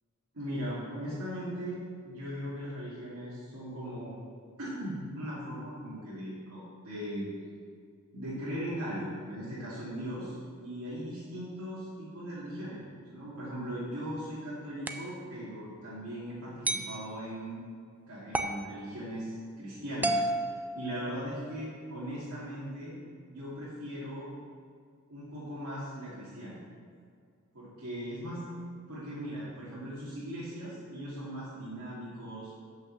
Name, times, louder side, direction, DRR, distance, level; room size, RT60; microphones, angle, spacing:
voice 1, 0.3-4.2 4.6-7.3 8.1-17.6 18.1-20.2 20.7-22.9 23.3-24.3 25.1-26.6 27.5-28.4 28.9-32.5, equal, 80° right, -10 dB, 2.6 m, -39 dB
sound 1, 14.9-15.1 16.6-17.0 18.3-18.6 20.0-21.4, right 1 dB, 10° right, 0.4 m, -32 dB
7.8 x 6.1 x 7.2 m, 2.1 s
head